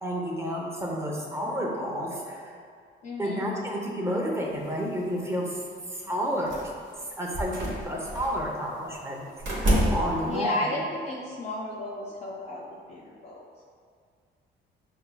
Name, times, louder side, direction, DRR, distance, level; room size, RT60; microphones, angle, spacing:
voice 1, 0.0-2.6 3.2-6.6 7.2-10.8, equal, 15° right, -2 dB, 0.6 m, -31 dB
voice 2, 3.0-3.5 10.2-13.5, left 2 dB, 35° left, -3 dB, 0.4 m, -33 dB
sound 1, 6.5-6.9 7.3-8.4 9.4-10.4, equal, 70° right, 0.9 m, -27 dB
5.2 x 2.2 x 2.2 m, 2.1 s
cardioid pair, 90°, 20 cm